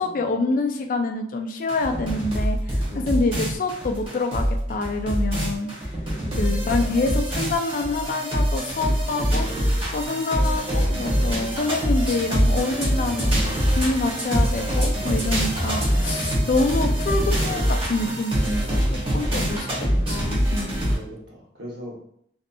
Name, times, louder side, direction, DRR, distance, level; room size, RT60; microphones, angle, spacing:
voice 1, 0.0-5.7 6.4-19.7 20.1-20.9, left 3 dB, 50° left, 4 dB, 0.3 m, -26 dB
sound 1, 1.7-21.0, equal, 35° right, 0.9 m, -24 dB
voice 2, 6.1-6.5 19.0-19.5 20.9-22.0, equal, 70° right, -4 dB, 1.0 m, -39 dB
2.7 x 2.4 x 2.3 m, 0.68 s
head